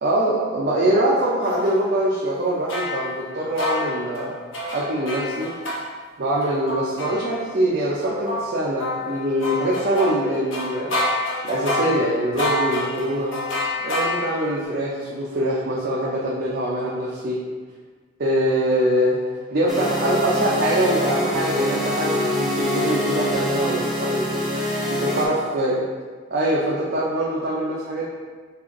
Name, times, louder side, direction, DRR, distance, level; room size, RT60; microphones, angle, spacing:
voice 1, 0.0-4.3 4.7-5.5 6.2-10.9 11.4-13.3 13.8-17.4 18.2-19.2 19.5-24.3 24.9-25.7 26.3-28.1, right 1 dB, 50° right, -5 dB, 0.6 m, -23 dB
sound 1, 1.4-1.7 2.7-5.8 6.4-7.6 8.0-14.5, left 1 dB, 80° left, 0.9 m, -28 dB
sound 2, 19.7-25.3, left 1 dB, ahead, 0.9 m, -24 dB
5.6 x 2.5 x 3.6 m, 1.5 s
head